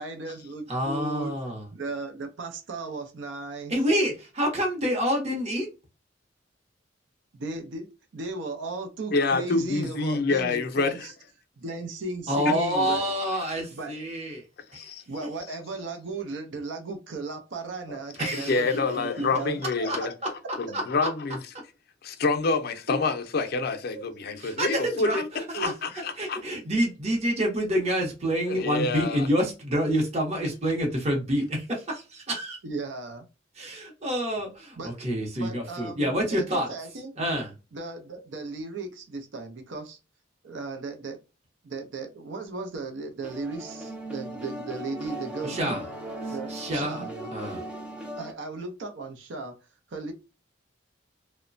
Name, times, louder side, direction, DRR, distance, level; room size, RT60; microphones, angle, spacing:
voice 1, 0.0-1.3 1.7-3.7 7.3-11.1 11.6-13.0 13.7-13.9 15.1-20.1 22.9-23.0 23.9-24.4 25.5-25.7 32.6-33.2 34.8-35.0 35.4-37.1 37.7-40.0 40.4-41.2 41.6-45.8 46.3-47.3 48.2-49.6 49.9-50.1, right 3 dB, 75° right, 0.5 m, -36 dB
voice 2, 0.7-1.7 3.7-5.7 12.3-14.4 14.7-14.9 18.2-18.6 19.9-20.0 20.7-20.8 24.4-25.7 26.2-32.6 33.6-36.7 37.2-37.5 45.4-45.8 46.5-47.1 47.3-47.6, equal, 35° right, 0.7 m, -27 dB
voice 3, 9.1-11.1 12.7-12.9 13.2-13.4 14.7-15.0 17.9-20.1 20.6-21.4 22.0-25.2 25.5-26.4 28.4-29.3, left 3 dB, 55° left, 0.5 m, -27 dB
sound 1, 43.2-48.3, right 1 dB, 5° right, 0.4 m, -38 dB
3.0 x 2.1 x 2.5 m
head